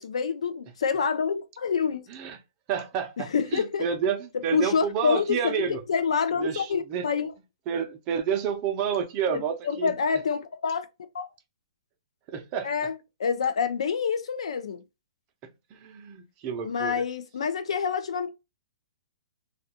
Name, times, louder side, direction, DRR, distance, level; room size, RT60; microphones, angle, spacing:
voice 1, 0.0-2.0 3.2-3.9 4.5-7.3 9.3-10.9 11.1-11.3 12.6-14.8 16.6-18.3, left 6 dB, 80° left, 0.5 m, -27 dB
voice 2, 2.7-5.8 6.4-7.0 7.7-9.9 12.3-12.7 15.7-17.0, right 7 dB, 30° right, 0.5 m, -30 dB
2.3 x 2.2 x 2.7 m
hypercardioid pair, 150°, 3 cm